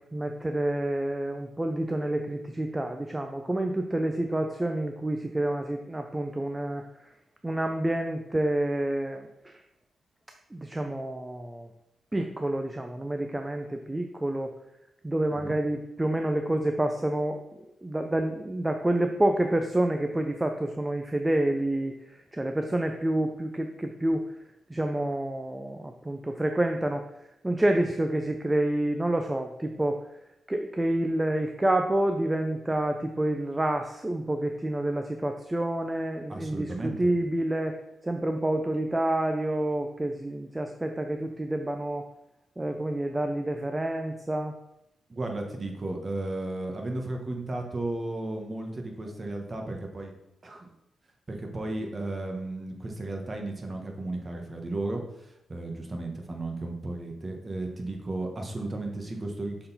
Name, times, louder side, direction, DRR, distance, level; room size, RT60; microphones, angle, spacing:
voice 1, 0.0-7.1 7.4-9.6 10.5-11.7 12.1-14.5 15.0-17.4 17.8-24.3 24.7-27.0 27.4-30.0 30.5-42.1 42.6-44.6, right 1 dB, 15° right, 5 dB, 0.4 m, -28 dB
voice 2, 36.3-37.1 45.1-50.1 50.4-50.7 51.3-59.7, right 2 dB, 30° right, 3 dB, 1.1 m, -34 dB
6.7 x 3.8 x 4.0 m, 0.85 s
cardioid pair, 105°, 0 cm